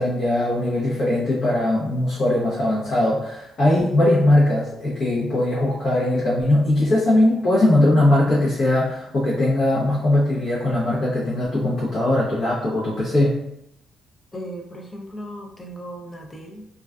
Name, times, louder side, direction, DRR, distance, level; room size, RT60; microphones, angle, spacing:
voice 1, 0.0-13.4, left 1 dB, 55° left, -8 dB, 0.7 m, -20 dB
voice 2, 14.3-16.7, equal, 20° left, 2 dB, 0.5 m, -36 dB
2.3 x 2.2 x 2.3 m, 0.79 s
cardioid pair, 90°, 0 cm